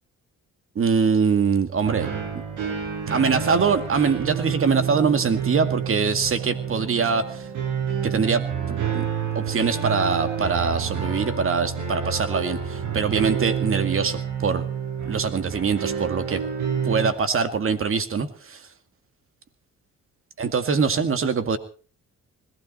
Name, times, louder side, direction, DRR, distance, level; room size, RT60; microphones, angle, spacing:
voice 1, 0.8-2.1 3.1-7.5 8.0-9.0 9.4-14.6 15.1-16.4 16.8-18.6 20.4-21.6, right 5 dB, 45° right, 10 dB, 2.2 m, -23 dB
sound 1, 1.8-17.1, right 7 dB, 80° right, 7.2 m, -28 dB
21.0 x 15.5 x 4.2 m, 0.40 s
cardioid pair, 90°, 30 cm